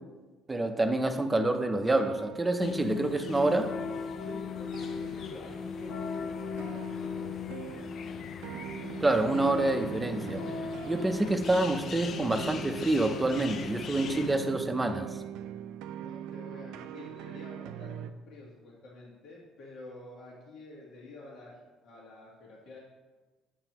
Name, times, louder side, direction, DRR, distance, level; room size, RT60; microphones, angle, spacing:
voice 1, 0.5-3.7 9.0-10.4 10.9-15.2, right 2 dB, 10° right, 7 dB, 0.6 m, -27 dB
sound 1, 1.8-4.4 4.7-5.7 6.6-18.1, right 10 dB, 80° right, 0.4 m, -43 dB
sound 2, 2.6-14.4, left 6 dB, 45° left, 0.4 m, -38 dB
voice 2, 4.2-8.1 16.0-22.8, left 2 dB, 65° left, -5 dB, 1.6 m, -49 dB
8.8 x 6.8 x 3.0 m, 1.3 s
cardioid pair, 130°, 0 cm